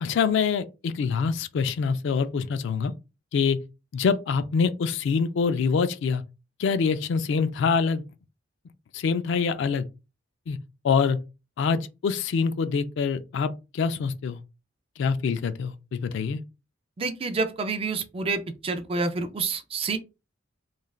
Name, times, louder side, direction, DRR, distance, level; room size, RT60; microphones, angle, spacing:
voice 1, 0.0-2.9 3.3-3.6 3.9-6.2 6.6-8.0 8.9-9.9 10.5-10.6 10.8-11.2 11.6-14.4 15.0-16.4, left 5 dB, 65° left, 0.3 m, -25 dB
voice 2, 17.0-20.0, right 4 dB, 30° right, 0.3 m, -28 dB
3.1 x 2.4 x 2.3 m
head